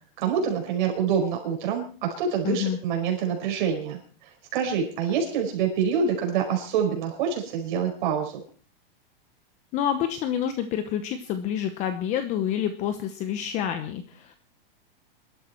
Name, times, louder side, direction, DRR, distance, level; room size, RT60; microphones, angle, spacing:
voice 1, 0.2-8.4, right 7 dB, 55° right, 2 dB, 5.2 m, -26 dB
voice 2, 2.4-2.8 9.7-14.4, left 9 dB, 25° left, 9 dB, 0.9 m, -28 dB
22.5 x 13.0 x 4.5 m, 0.41 s
supercardioid pair, 165°, 29 cm